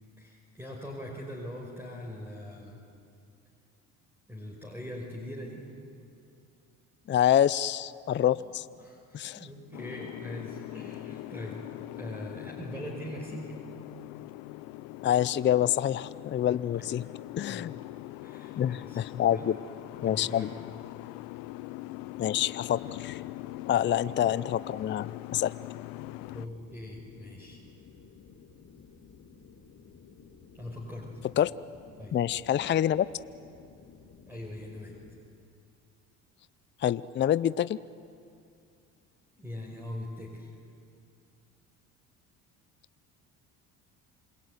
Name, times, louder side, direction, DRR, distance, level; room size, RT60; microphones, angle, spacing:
voice 1, 0.2-2.8 4.3-5.6 8.4-8.5 8.8-11.6 11.9-13.5 16.7-16.9 17.5-17.7 18.2-19.5 20.0-20.5 23.7-24.1 26.3-27.6 30.5-31.1 32.0-32.2 34.3-35.0 39.4-40.5, left 1 dB, 5° right, -3 dB, 5.5 m, -42 dB
voice 2, 7.1-8.7 9.1-9.5 15.0-17.0 17.4-17.8 18.6-19.6 20.0-20.5 22.2-23.2 23.7-25.5 31.4-31.5 32.1-33.1 36.8-37.8, left 11 dB, 35° left, 17 dB, 0.5 m, -26 dB
Boat Water vehicle, 9.7-26.5, left 17 dB, 80° left, 0.7 m, -42 dB
sound 1, 26.0-35.2, left 6 dB, 50° left, 2.6 m, -54 dB
27.0 x 21.5 x 9.5 m, 2.5 s
supercardioid pair, 85°, 34 cm